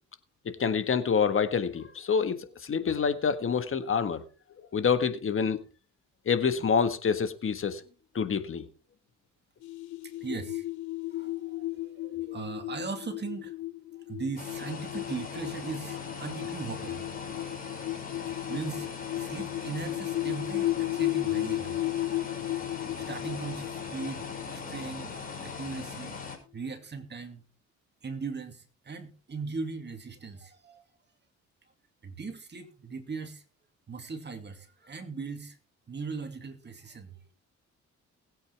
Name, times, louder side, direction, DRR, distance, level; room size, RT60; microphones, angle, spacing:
voice 1, 0.6-4.2 4.7-5.6 6.2-7.8 8.1-8.7, left 6 dB, 45° left, 1.6 m, -27 dB
sound 1, 9.6-25.9, left 16 dB, 80° left, 1.2 m, -35 dB
voice 2, 10.2-10.7 11.2-13.5 14.1-17.8 18.2-18.9 19.2-21.8 23.0-25.1 25.4-26.2 26.5-27.4 28.0-30.8 32.0-33.4 33.9-35.6 35.9-37.2, right 4 dB, 35° right, 2.4 m, -39 dB
sound 2, 14.4-26.4, left 5 dB, 30° left, 5.4 m, -40 dB
20.5 x 8.6 x 3.5 m
cardioid pair, 90°, 30 cm